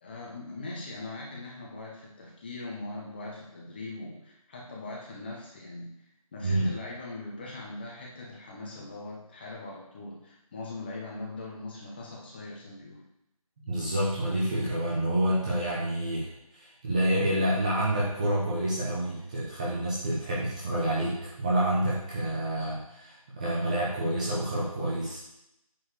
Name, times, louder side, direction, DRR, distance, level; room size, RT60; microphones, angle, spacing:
voice 1, 0.0-5.9 6.3-13.0, left 2 dB, 15° left, -3 dB, 1.4 m, -41 dB
voice 2, 13.6-25.2, right 1 dB, 10° right, -7 dB, 1.0 m, -28 dB
9.5 x 4.7 x 6.4 m, 0.83 s
figure-of-eight pair, 165°, 19 cm